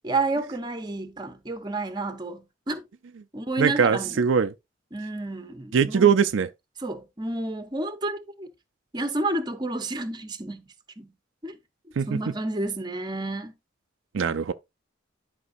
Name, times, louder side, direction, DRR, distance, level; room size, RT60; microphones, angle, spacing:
voice 1, 0.0-2.8 3.3-4.2 4.9-6.2 6.8-8.5 8.9-10.6 11.0-11.1 11.4-11.6 12.1-13.5, right 2 dB, 20° right, 0.9 m, -30 dB
voice 2, 3.6-4.5 5.7-6.5 12.0-12.3 14.1-14.5, right 6 dB, 70° right, 0.4 m, -21 dB
11.0 x 5.2 x 2.6 m
head